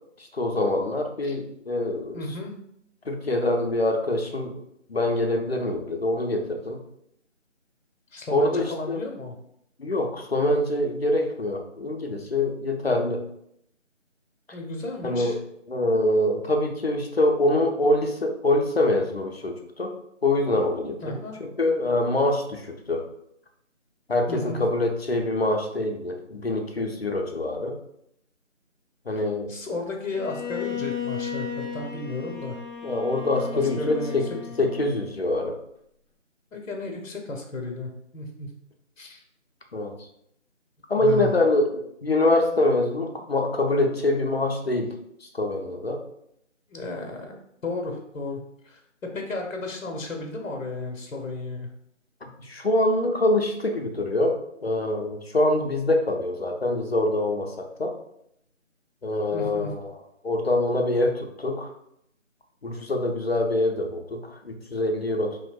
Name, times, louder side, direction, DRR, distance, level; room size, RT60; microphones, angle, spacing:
voice 1, 0.3-2.2 3.1-4.6 4.9-6.8 8.3-9.0 9.8-13.2 15.0-15.4 15.7-19.9 20.2-23.0 24.1-27.8 29.1-29.5 32.8-34.2 34.6-35.6 39.7-39.9 40.9-44.9 45.3-46.0 52.2-57.9 59.0-60.0 60.2-61.7 62.6-65.5, left 1 dB, 55° left, 3 dB, 0.5 m, -25 dB
voice 2, 2.1-2.5 8.1-9.4 14.5-15.4 21.0-21.4 24.3-24.6 29.2-32.6 33.5-34.2 36.5-38.5 39.0-39.2 41.0-41.3 46.7-47.4 47.6-51.7 59.3-59.7, left 2 dB, 85° left, 2 dB, 0.7 m, -33 dB
Bowed string instrument, 30.1-35.1, left 7 dB, 35° right, 1.0 m, -35 dB
3.1 x 2.7 x 2.2 m, 0.74 s
figure-of-eight pair, 170°, 38 cm